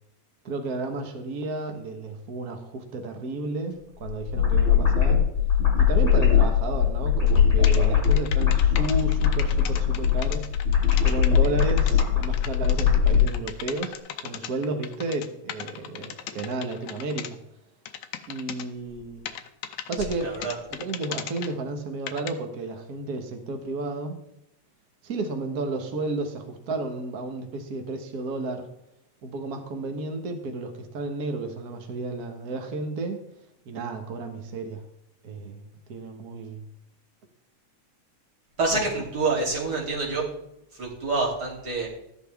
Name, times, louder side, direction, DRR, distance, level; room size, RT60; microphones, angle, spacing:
voice 1, 0.4-5.3 5.8-10.5 11.0-17.4 18.3-19.3 19.9-24.2 25.0-28.7 29.2-33.2 33.6-34.8 35.2-36.7 38.7-38.8, right 2 dB, 70° right, 5 dB, 0.8 m, -32 dB
sound 1, 4.0-13.3, left 8 dB, 15° left, 5.4 m, -21 dB
sound 2, 7.3-7.4 7.6-17.3 17.9-18.6 19.3-21.5 22.1-22.3, left 10 dB, 80° left, 2.1 m, -37 dB
voice 2, 20.2-20.5 38.6-40.2 40.8-41.9, right 3 dB, 35° right, -4 dB, 3.4 m, -27 dB
13.0 x 11.0 x 3.5 m, 0.81 s
omnidirectional pair, 3.3 m